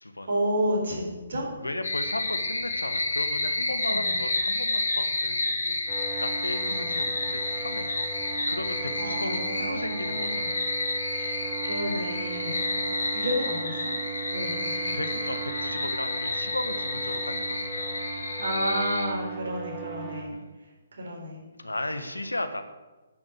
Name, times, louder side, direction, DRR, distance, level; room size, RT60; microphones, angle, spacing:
voice 1, 0.3-1.5 3.9-4.1 6.6-6.9 8.9-10.5 11.1-12.7 13.1-13.9 14.3-15.2 18.4-20.3 20.9-21.4, equal, 65° right, -1 dB, 4.1 m, -31 dB
voice 2, 1.6-7.9 8.5-10.6 12.7-13.1 14.9-17.9 20.3-20.5 21.6-22.6, left 1 dB, 85° left, 9 dB, 1.2 m, -36 dB
sound 1, 1.8-19.1, left 2 dB, 70° left, 2.2 m, -30 dB
sound 2, 5.9-20.2, right 5 dB, 15° right, 3.0 m, -38 dB
10.0 x 6.4 x 7.8 m, 1.2 s
figure-of-eight pair, 135°, 0 cm